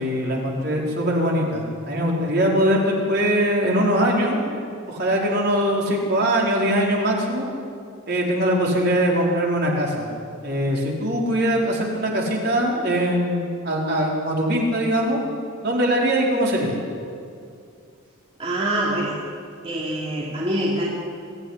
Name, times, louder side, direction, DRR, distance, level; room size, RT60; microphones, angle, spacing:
voice 1, 0.0-4.4 4.9-7.4 8.1-10.1 10.4-15.2 15.6-16.7, equal, 45° right, -2 dB, 4.7 m, -22 dB
voice 2, 18.4-19.2 19.6-20.9, right 1 dB, 25° right, -4 dB, 3.0 m, -25 dB
23.5 x 15.5 x 10.0 m, 2.4 s
head